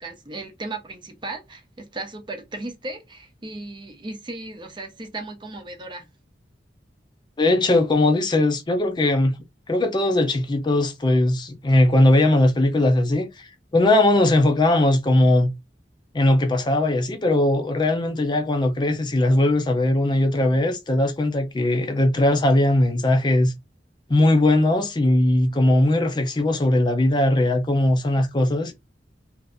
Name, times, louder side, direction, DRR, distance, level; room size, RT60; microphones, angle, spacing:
voice 1, 0.0-6.1, right 2 dB, 25° right, 0.7 m, -36 dB
voice 2, 7.4-9.4 9.7-15.5 16.1-23.5 24.1-28.7, left 1 dB, 25° left, 0.5 m, -19 dB
2.6 x 2.5 x 3.4 m
head